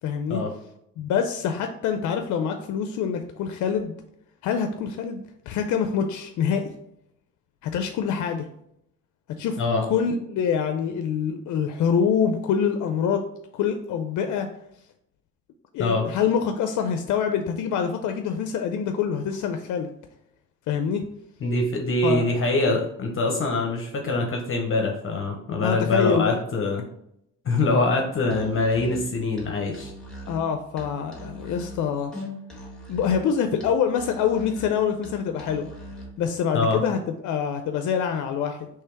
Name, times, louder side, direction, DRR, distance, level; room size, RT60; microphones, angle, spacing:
voice 1, 0.0-0.4 1.0-3.9 4.4-6.6 7.6-8.5 9.4-13.2 13.5-14.5 15.7-19.9 20.7-21.0 22.0-22.3 25.6-26.4 30.3-32.1 32.9-35.7 36.2-38.7, left 7 dB, 75° left, 6 dB, 0.5 m, -25 dB
voice 2, 21.4-26.8 27.4-29.9 36.5-36.8, left 2 dB, 45° left, 2 dB, 0.7 m, -24 dB
Musical instrument, 28.2-36.2, equal, ahead, 1.5 m, -41 dB
3.4 x 3.2 x 4.5 m, 0.75 s
cardioid pair, 90°, 30 cm